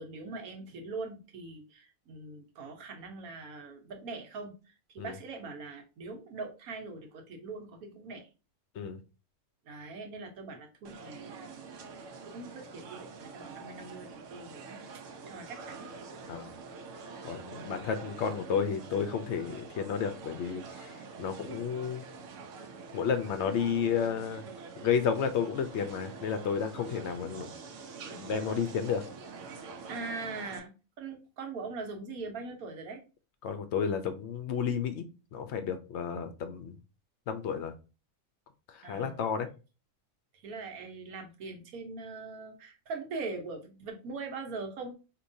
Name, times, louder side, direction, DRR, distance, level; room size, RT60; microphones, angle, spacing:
voice 1, 0.0-4.5 4.9-8.3 9.6-11.9 12.2-15.9 17.5-17.8 29.9-33.0 38.8-39.2 40.4-44.9, right 3 dB, 85° right, 4 dB, 1.3 m, -42 dB
sound 1, 10.8-30.6, right 4 dB, 65° right, 0.9 m, -46 dB
voice 2, 17.2-22.0 22.9-24.5 24.8-27.5 28.1-29.0 33.4-35.1 35.3-36.8 37.3-37.7 38.7-39.5, left 7 dB, 65° left, 9 dB, 0.8 m, -32 dB
4.6 x 2.9 x 2.6 m, 0.31 s
omnidirectional pair, 1.5 m